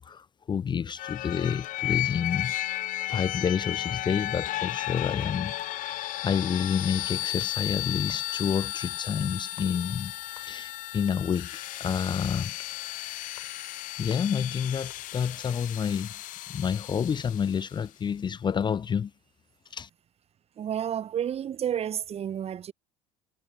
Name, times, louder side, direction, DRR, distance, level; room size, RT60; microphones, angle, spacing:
voice 1, 0.0-12.5 14.0-16.1 16.5-19.1 19.7-19.9, left 7 dB, 25° left, 0.7 m, -29 dB
sound 1, 1.0-17.7, left 16 dB, 45° left, 1.0 m, -34 dB
sound 2, 5.3-15.4, left 10 dB, 75° left, 4.9 m, -59 dB
voice 2, 20.6-22.7, right 9 dB, 35° right, 1.1 m, -30 dB
figure-of-eight pair, 60°, 18 cm